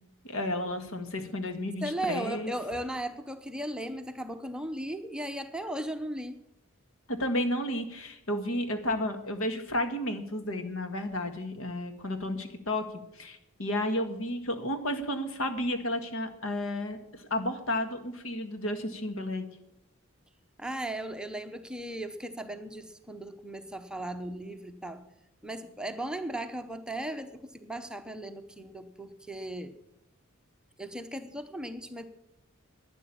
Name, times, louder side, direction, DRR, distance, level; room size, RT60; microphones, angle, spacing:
voice 1, 0.2-2.5 7.1-12.8 13.1-19.5, left 1 dB, 80° left, 7 dB, 1.8 m, -32 dB
voice 2, 1.8-6.4 20.6-25.0 25.4-29.7 30.8-32.1, right 1 dB, 5° right, 7 dB, 0.8 m, -37 dB
11.5 x 10.0 x 8.5 m, 0.84 s
head